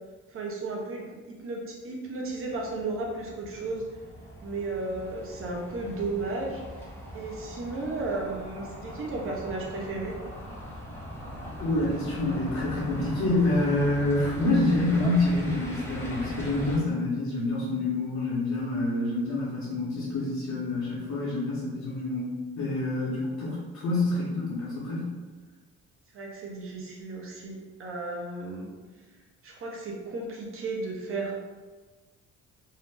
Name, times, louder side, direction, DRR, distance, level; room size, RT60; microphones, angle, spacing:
voice 1, 0.3-3.8 4.4-6.6 7.1-10.1 26.1-28.7 29.4-31.4, right 3 dB, 45° right, -1 dB, 0.8 m, -34 dB
sound 1, 2.3-16.8, equal, 10° left, 0.7 m, -40 dB
voice 2, 11.6-25.1, left 2 dB, 65° left, -8 dB, 0.9 m, -27 dB
2.7 x 2.1 x 3.2 m, 1.3 s
cardioid pair, 90°, 30 cm